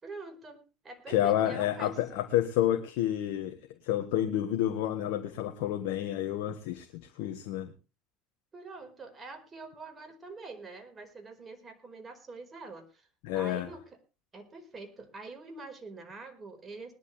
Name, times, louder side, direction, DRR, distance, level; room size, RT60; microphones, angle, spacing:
voice 1, 0.0-2.0 8.5-13.1 13.3-13.8 14.3-16.9, right 3 dB, 30° right, 4.6 m, -45 dB
voice 2, 1.1-3.6 3.8-6.9 7.2-7.7 13.2-13.7, left 12 dB, 70° left, 1.5 m, -29 dB
20.0 x 11.5 x 3.3 m
hypercardioid pair, 75°, 0 cm